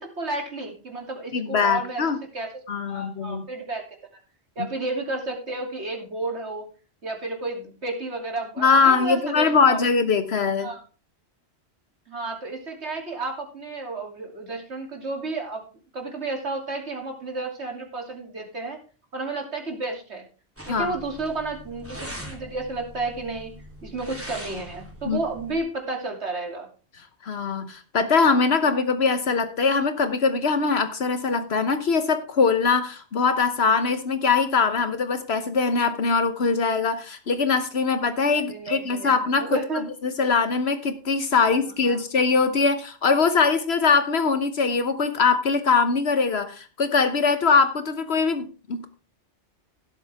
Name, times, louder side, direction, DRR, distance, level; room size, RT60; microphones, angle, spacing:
voice 1, 0.0-2.0 2.3-2.5 2.9-3.9 4.6-6.6 7.0-9.8 10.6-10.8 12.1-15.6 15.9-18.8 19.1-20.3 20.7-23.6 23.8-26.7 38.4-39.8 41.4-41.5 41.8-42.0, right 3 dB, 85° right, 2 dB, 3.2 m, -32 dB
voice 2, 1.3-2.2 2.7-3.4 4.6-4.7 8.6-10.7 20.7-21.0 25.0-25.2 27.2-39.6 40.0-48.9, left 5 dB, 70° left, 9 dB, 1.2 m, -22 dB
sound 1, 20.6-25.6, equal, 10° right, 3.2 m, -41 dB
16.5 x 8.1 x 3.5 m, 0.35 s
omnidirectional pair, 1.1 m